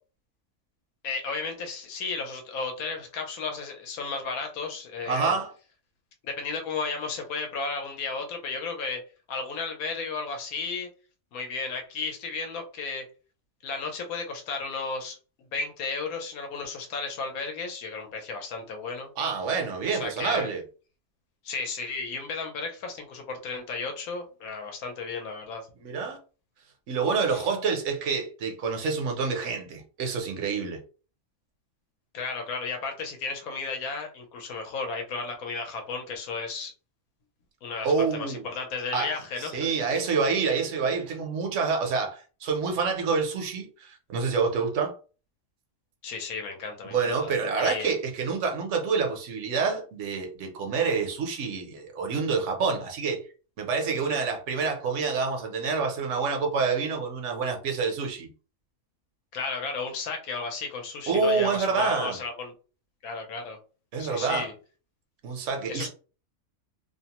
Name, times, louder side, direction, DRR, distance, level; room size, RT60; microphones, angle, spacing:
voice 1, 1.0-5.3 6.2-9.0 9.3-10.9 11.3-13.1 13.6-19.1 19.9-20.5 21.4-25.7 27.3-27.4 32.1-36.7 37.6-39.7 46.0-48.0 59.3-62.5 63.0-63.6 64.0-64.5 65.7-65.9, left 4 dB, 90° left, 1.1 m, -34 dB
voice 2, 5.1-5.5 19.2-20.6 25.8-26.2 26.9-30.8 37.8-38.4 38.9-39.1 39.4-45.0 46.8-53.2 53.6-58.3 61.1-62.2 63.9-64.5 65.2-65.9, right 5 dB, 65° right, 0.9 m, -27 dB
2.7 x 2.0 x 2.9 m
omnidirectional pair, 1.5 m